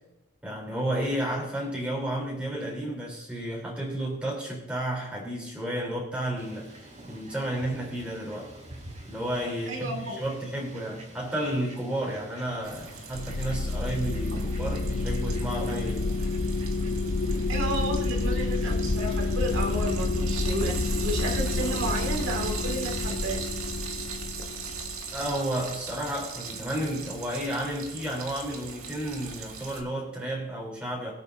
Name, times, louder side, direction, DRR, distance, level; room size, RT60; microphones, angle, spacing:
voice 1, 0.4-8.5 9.1-16.1 25.1-31.1, right 1 dB, 5° right, -4 dB, 3.6 m, -32 dB
Fowl, 6.4-20.0, right 1 dB, 35° right, 3.2 m, -48 dB
voice 2, 9.7-10.2 14.3-14.4 17.5-23.4, right 1 dB, 60° right, 1 dB, 2.3 m, -32 dB
Frying (food), 12.6-29.8, right 5 dB, 80° right, 1.9 m, -40 dB
sound 1, 13.1-25.4, left 3 dB, 70° left, 0.9 m, -29 dB
23.5 x 8.4 x 2.7 m, 0.98 s
head